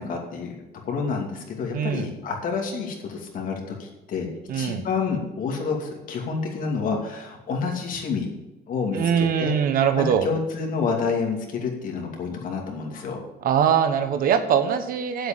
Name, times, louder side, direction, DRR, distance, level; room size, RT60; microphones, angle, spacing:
voice 1, 0.0-4.3 4.5-8.3 8.7-9.6 9.9-13.2, left 5 dB, 55° left, 1 dB, 2.6 m, -29 dB
voice 2, 1.7-2.1 4.5-4.8 8.9-10.3 13.4-15.3, right 8 dB, 60° right, 9 dB, 1.2 m, -22 dB
8.6 x 8.0 x 8.7 m, 1.0 s
cardioid pair, 160°, 17 cm